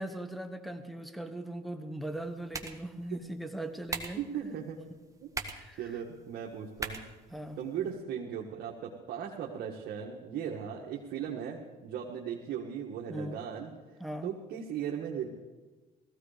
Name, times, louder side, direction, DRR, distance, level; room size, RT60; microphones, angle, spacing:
voice 1, 0.0-4.2 5.5-6.0 7.3-7.6 13.1-13.4 14.0-14.3, right 1 dB, ahead, 9 dB, 1.3 m, -39 dB
sound 1, 2.0-8.0, right 3 dB, 20° right, 1.6 m, -44 dB
voice 2, 4.2-4.8 5.2-5.3 5.8-7.0 7.6-13.7 14.2-15.3, right 8 dB, 70° right, -2 dB, 1.8 m, -37 dB
17.5 x 15.0 x 5.1 m, 1.3 s
cardioid pair, 110°, 17 cm